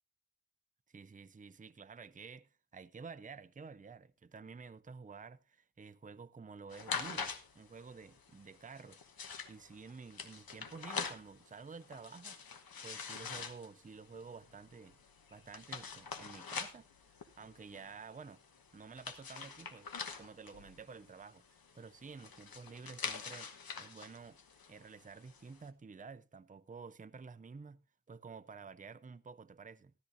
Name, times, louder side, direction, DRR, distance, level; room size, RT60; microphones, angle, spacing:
voice 1, 0.9-9.0 9.5-12.4 12.8-15.0 15.3-16.9 17.2-18.4 18.7-23.5 23.8-24.4 24.7-29.9, right 5 dB, 25° right, 0.5 m, -51 dB
sound 1, 6.7-25.7, left 5 dB, 80° left, 1.2 m, -45 dB
15.0 x 13.0 x 2.6 m
wide cardioid pair, 80°, 35 cm